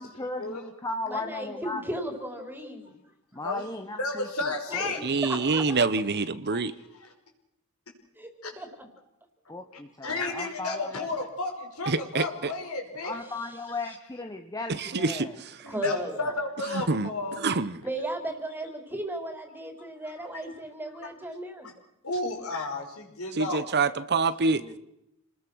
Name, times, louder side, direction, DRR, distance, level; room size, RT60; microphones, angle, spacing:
voice 1, 0.0-1.8 3.3-5.6 9.5-11.1 13.0-15.4 24.5-24.8, left 2 dB, 15° left, 5 dB, 1.2 m, -37 dB
voice 2, 1.1-2.9 4.8-4.9 5.2-5.6 8.2-8.3 8.6-8.7 15.7-16.4 17.8-21.7, right 1 dB, 10° right, 5 dB, 4.0 m, -35 dB
voice 3, 4.0-5.0 6.4-6.6 8.4-8.5 10.0-13.2 15.6-17.4 21.0-21.1 21.6-21.7 22.0-23.6, left 2 dB, 70° left, 3 dB, 5.4 m, -32 dB
voice 4, 5.0-6.7 11.9-12.5 14.7-15.3 16.7-17.1 17.4-17.8 23.3-24.6, right 4 dB, 50° right, 14 dB, 0.9 m, -26 dB
28.5 x 20.5 x 6.3 m, 0.83 s
head